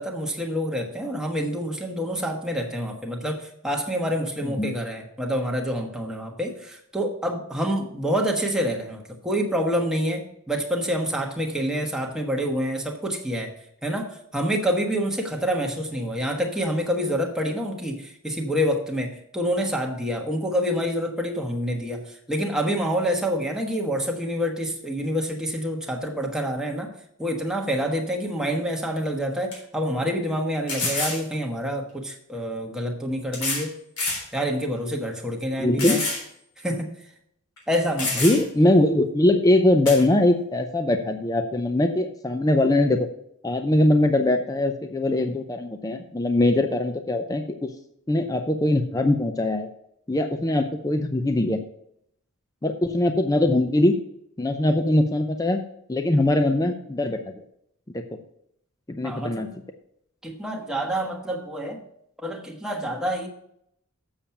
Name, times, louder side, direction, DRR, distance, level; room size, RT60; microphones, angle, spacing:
voice 1, 0.0-13.5 13.8-26.9 27.2-33.7 34.3-36.0 36.6-36.9 37.7-38.2 59.0-59.5 60.2-61.8 62.2-63.3, equal, 5° right, 0 dB, 1.2 m, -27 dB
sound 1, 28.9-29.0 29.5-29.6 30.7-31.2 32.3-32.4 33.3-33.7 34.0-34.2 34.8-34.9 35.8-36.2 36.6-36.7 37.6-37.7 38.0-38.6 39.8-40.0, left 3 dB, 85° left, 3.9 m, -27 dB
voice 2, 35.6-36.0 38.2-43.1 43.4-47.7 48.1-49.7 50.1-51.6 52.6-53.9 54.4-55.6 55.9-57.2 59.0-59.5, left 1 dB, 15° left, 7 dB, 0.5 m, -21 dB
7.2 x 7.1 x 5.7 m, 0.73 s
head